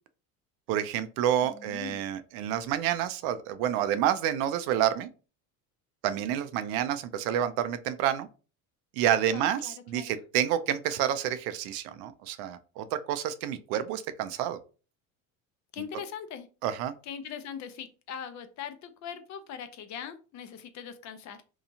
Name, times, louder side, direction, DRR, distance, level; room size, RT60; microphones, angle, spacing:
voice 1, 0.7-5.1 6.0-8.3 9.0-14.6 16.6-16.9, right 10 dB, 65° right, 11 dB, 0.5 m, -29 dB
voice 2, 1.4-2.0 9.3-10.2 15.7-16.5 17.0-21.4, left 8 dB, 45° left, 9 dB, 0.5 m, -41 dB
2.8 x 2.3 x 2.6 m, 0.35 s
hypercardioid pair, 80°, 41 cm